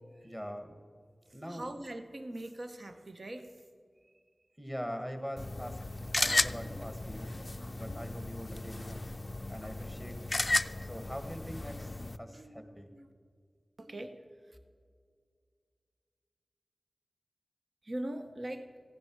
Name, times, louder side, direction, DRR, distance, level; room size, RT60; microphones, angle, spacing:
voice 1, 0.2-0.8 1.3-1.7 4.6-5.8 6.1-7.4 7.8-9.0 9.5-10.2 10.8-12.9, equal, 10° right, 7 dB, 1.6 m, -42 dB
voice 2, 1.3-3.7 4.0-4.2 6.1-6.8 7.3-8.1 8.5-8.6 12.3-13.1 13.8-14.6 17.8-18.7, right 1 dB, 55° right, 7 dB, 0.8 m, -44 dB
sound 1, 5.4-12.2, left 2 dB, 40° left, 0.4 m, -34 dB
15.5 x 10.0 x 4.6 m, 2.1 s
wide cardioid pair, 50°, 0 cm